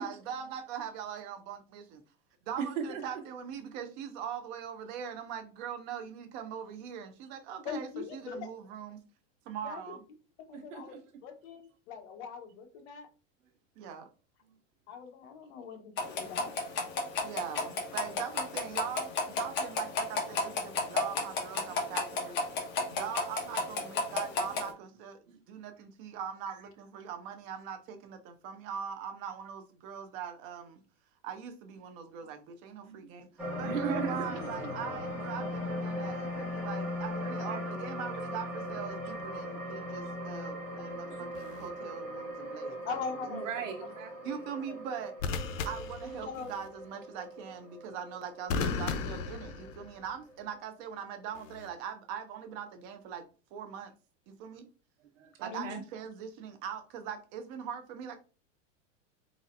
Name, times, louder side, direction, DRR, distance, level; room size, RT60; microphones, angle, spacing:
voice 1, 0.0-2.0 2.5-9.0 9.5-10.0 13.8-14.1 17.2-25.2 25.5-30.8 31.2-43.0 44.2-45.2 45.6-53.3 53.5-53.9 54.3-54.7 55.4-58.2, right 8 dB, 25° right, 0.4 m, -41 dB
voice 2, 2.6-3.2 10.5-11.0 16.1-16.4 25.3-25.4 26.5-26.6 32.2-32.3 32.8-33.1 33.6-34.7 37.2-37.6 41.1-41.3 43.3-44.4 55.0-55.8, right 6 dB, 75° right, 1.1 m, -39 dB
voice 3, 7.6-8.5 9.6-9.9 10.4-11.0 11.2-13.1 14.9-16.6 37.4-37.5 42.9-43.5 44.7-44.8 46.2-46.5 55.5-55.8, left 5 dB, 60° left, 1.1 m, -41 dB
sound 1, 16.0-24.7, left 3 dB, 30° left, 1.1 m, -33 dB
sound 2, 33.4-49.9 50.3-50.4, left 1 dB, 5° right, 1.7 m, -39 dB
sound 3, 41.3-41.7 45.2-46.7 48.5-50.2 51.4-51.7, left 5 dB, 85° left, 0.7 m, -36 dB
4.0 x 4.0 x 2.5 m
supercardioid pair, 160°, 38 cm